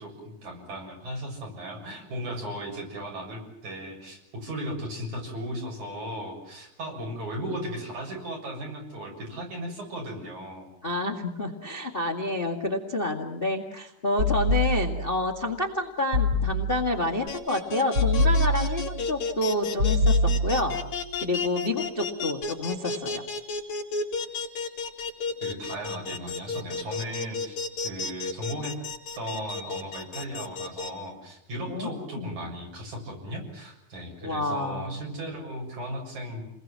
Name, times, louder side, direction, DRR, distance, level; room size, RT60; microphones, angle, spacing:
voice 1, 0.0-10.7 13.7-13.8 25.4-27.6 27.8-28.7 29.2-36.4, equal, 60° right, 1 dB, 8.3 m, -36 dB
voice 2, 10.8-20.2 20.4-20.8 21.2-23.2 31.7-31.9 32.2-32.4 34.2-35.1, left 2 dB, 20° left, 2 dB, 1.7 m, -29 dB
sound 1, 14.2-15.2 16.1-17.0 17.9-19.0 19.8-20.9, left 1 dB, 45° right, 3.0 m, -24 dB
sound 2, 17.3-30.9, left 4 dB, 60° left, 4.3 m, -32 dB
30.0 x 21.0 x 7.5 m, 0.81 s
omnidirectional pair, 3.7 m